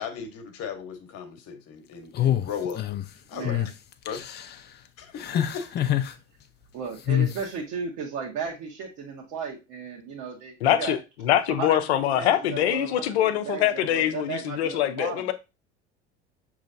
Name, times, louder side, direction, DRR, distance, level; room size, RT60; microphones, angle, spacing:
voice 1, 0.0-2.8 3.3-3.6 4.0-4.2 5.0-5.8, left 7 dB, 45° left, 1.1 m, -36 dB
sound 1, 2.1-3.1 3.4-3.7 4.1-4.5 5.2-6.1 7.1-7.4, left 11 dB, 30° left, 0.5 m, -25 dB
voice 2, 3.3-3.7 6.7-11.0 11.5-15.3, right 6 dB, 55° right, 1.3 m, -35 dB
voice 3, 10.6-15.3, left 12 dB, 70° left, 0.7 m, -24 dB
6.2 x 3.1 x 2.6 m
hypercardioid pair, 70°, 33 cm